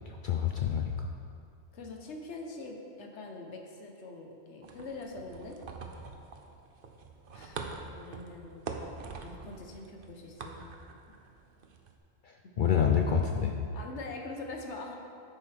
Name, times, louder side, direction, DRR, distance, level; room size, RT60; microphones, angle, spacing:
voice 1, 0.1-0.9 12.6-13.5, left 7 dB, 55° left, 2 dB, 0.6 m, -27 dB
voice 2, 1.7-5.6 7.3-8.7 9.2-10.8 13.7-15.0, left 3 dB, 85° left, 1 dB, 1.3 m, -43 dB
sound 1, 4.6-12.0, right 4 dB, 55° right, 0.8 m, -44 dB
10.5 x 8.5 x 3.4 m, 2.6 s
omnidirectional pair, 1.2 m